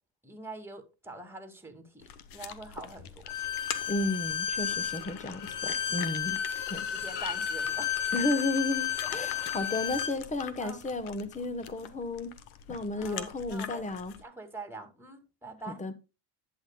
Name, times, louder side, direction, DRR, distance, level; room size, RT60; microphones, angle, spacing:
voice 1, 0.2-2.0 2.3-3.3 5.9-6.1 6.9-8.1 9.0-9.5 10.6-10.8 12.9-13.9 14.2-15.8, right 3 dB, 5° right, 2.1 m, -45 dB
sound 1, 2.0-14.2, left 9 dB, 85° left, 1.2 m, -45 dB
Bowed string instrument, 3.3-10.1, left 9 dB, 55° left, 1.5 m, -32 dB
voice 2, 3.9-6.4 6.7-6.9 8.1-12.3 12.7-14.1 15.6-15.9, left 2 dB, 15° left, 1.1 m, -33 dB
11.5 x 8.5 x 2.2 m
cardioid pair, 100°, 47 cm